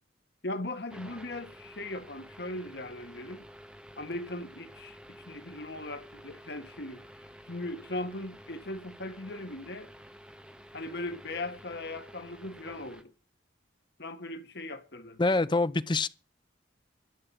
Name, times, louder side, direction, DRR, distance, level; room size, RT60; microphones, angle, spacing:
voice 1, 0.4-3.5 4.0-7.0 7.5-9.9 10.7-13.1 14.0-15.2, left 2 dB, 60° left, 1.7 m, -39 dB
sound 1, 0.9-13.0, equal, 5° right, 1.2 m, -51 dB
voice 2, 15.2-16.1, left 3 dB, 25° left, 0.6 m, -25 dB
12.0 x 7.2 x 8.3 m
head